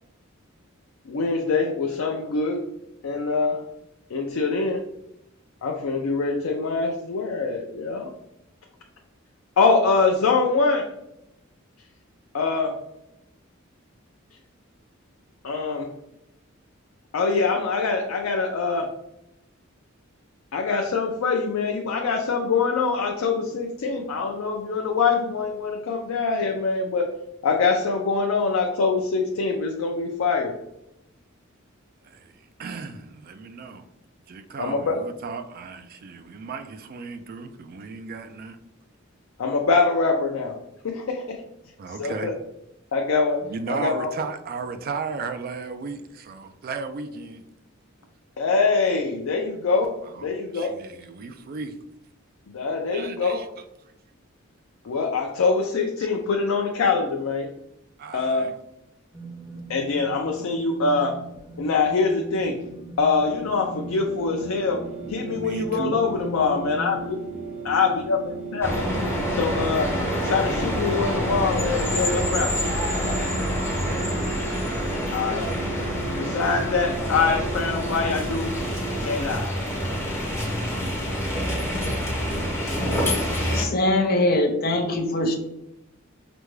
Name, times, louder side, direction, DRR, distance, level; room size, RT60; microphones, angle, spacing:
voice 1, 1.1-2.6 3.0-3.6 4.1-4.9 5.6-8.1 9.6-10.9 12.3-12.8 15.4-15.9 17.1-18.9 20.5-27.1 27.4-30.5 34.6-35.0 39.4-40.6 40.8-41.4 42.0-42.3 42.9-43.4 43.7-44.1 48.4-50.7 52.5-53.4 54.8-57.5 58.1-58.5 59.7-61.2 61.6-62.6 63.0-67.2 67.6-68.2 68.5-68.8 69.4-72.6 75.1-75.5 76.1-78.6 79.0-79.5, left 4 dB, 90° left, 0.5 m, -24 dB
voice 2, 32.0-33.8 34.3-38.6 41.8-42.3 43.4-47.4 50.0-51.8 52.9-53.6 58.0-58.5 65.3-66.0, right 4 dB, 45° right, 0.3 m, -35 dB
sound 1, 59.1-67.0, right 3 dB, 10° right, 1.1 m, -40 dB
sound 2, 63.4-79.2, right 4 dB, 75° right, 0.8 m, -36 dB
sound 3, 68.6-83.6, equal, 15° left, 1.0 m, -27 dB
voice 3, 83.5-85.4, left 1 dB, 45° left, 0.6 m, -22 dB
5.0 x 2.2 x 3.1 m
head